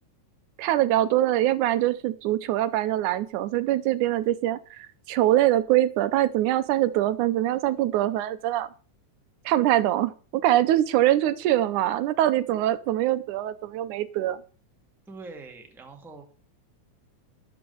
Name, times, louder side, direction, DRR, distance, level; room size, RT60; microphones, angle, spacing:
voice 1, 0.6-8.7 9.5-14.4, right 13 dB, 85° right, 14 dB, 2.2 m, -23 dB
voice 2, 15.1-16.2, right 3 dB, ahead, 3 dB, 1.3 m, -43 dB
12.5 x 6.1 x 6.8 m, 0.38 s
omnidirectional pair, 3.5 m